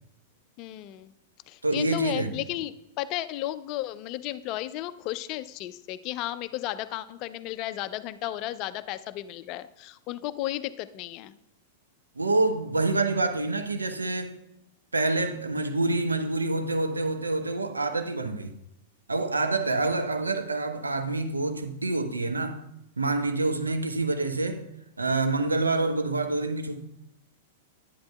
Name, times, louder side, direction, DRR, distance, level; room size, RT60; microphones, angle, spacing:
voice 1, 0.6-1.1 1.5-11.4, left 14 dB, 40° left, 0.3 m, -34 dB
voice 2, 1.6-2.4 12.2-14.3 14.9-18.5 19.1-22.6 23.0-24.6 25.0-26.8, right 2 dB, 80° right, 0.7 m, -27 dB
10.5 x 10.0 x 2.2 m
figure-of-eight pair, 95°, 0 cm